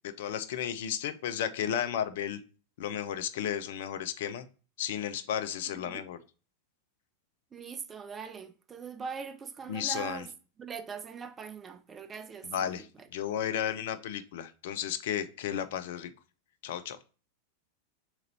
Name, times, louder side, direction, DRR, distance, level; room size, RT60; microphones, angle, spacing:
voice 1, 0.2-2.4 2.8-4.5 4.8-6.2 9.7-10.2 12.4-12.9 13.1-16.1 16.6-17.0, left 9 dB, 55° left, 0.4 m, -33 dB
voice 2, 7.5-10.3 10.6-13.1, right 6 dB, 20° right, 0.4 m, -41 dB
3.8 x 3.0 x 4.0 m
figure-of-eight pair, 90°, 0 cm